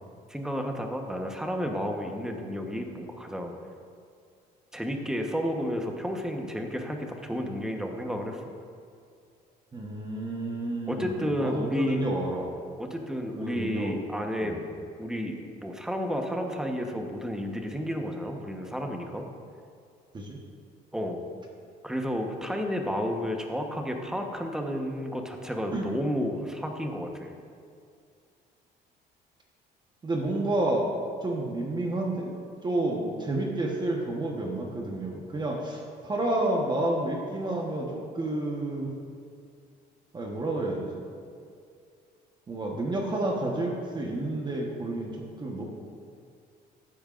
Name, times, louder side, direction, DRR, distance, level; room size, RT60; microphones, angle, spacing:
voice 1, 0.3-3.5 4.7-8.5 10.9-12.1 12.8-14.6 15.0-19.3 20.9-21.2 21.8-27.3, equal, 5° right, 3 dB, 1.1 m, -31 dB
voice 2, 9.7-12.5 13.4-14.0 14.4-14.6 20.1-20.4 25.7-25.9 30.0-30.9 31.2-32.3 32.6-38.9 40.1-40.9 42.5-45.1 45.4-45.6, right 2 dB, 25° right, 0 dB, 1.2 m, -30 dB
14.5 x 8.8 x 2.5 m, 2.3 s
cardioid pair, 110°, 17 cm